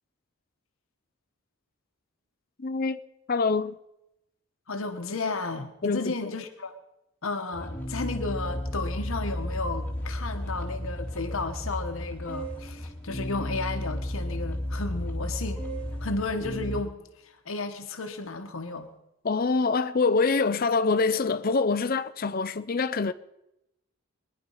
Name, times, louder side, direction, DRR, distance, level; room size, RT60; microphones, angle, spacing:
voice 1, 2.6-3.0 3.3-3.8 5.8-6.4 19.2-23.1, left 4 dB, 45° left, 0.6 m, -25 dB
voice 2, 4.7-6.7 7.2-15.7 16.0-18.9, left 3 dB, 65° left, 1.1 m, -33 dB
sound 1, 7.5-16.8, equal, 5° left, 2.5 m, -33 dB
23.0 x 10.5 x 5.5 m
head